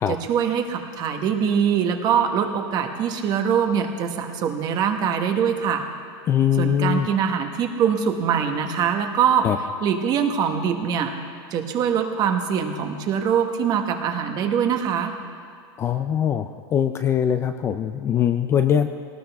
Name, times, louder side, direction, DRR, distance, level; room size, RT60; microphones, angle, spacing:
voice 1, 0.1-5.8 6.6-9.5 9.8-11.1 11.5-15.1, right 7 dB, 30° right, 5 dB, 1.2 m, -23 dB
voice 2, 6.3-7.1 9.4-9.6 15.8-18.9, left 9 dB, 20° left, 8 dB, 0.4 m, -22 dB
19.5 x 19.0 x 3.5 m, 2.1 s
supercardioid pair, 155°, 13 cm